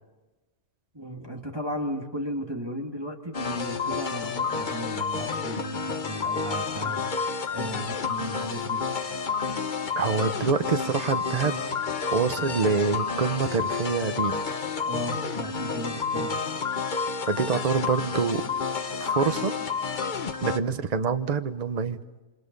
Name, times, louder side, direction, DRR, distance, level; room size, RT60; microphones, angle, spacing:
voice 1, 0.9-8.8 14.8-16.4, equal, 15° right, 1 dB, 2.2 m, -35 dB
sound 1, 3.3-20.6, left 5 dB, 40° left, 1.0 m, -30 dB
voice 2, 10.0-11.7 12.1-14.4 16.2-16.3 17.3-18.5 19.0-19.5 20.4-22.0, right 5 dB, 30° right, 9 dB, 0.9 m, -26 dB
29.0 x 25.5 x 5.4 m, 1.1 s
omnidirectional pair, 1.5 m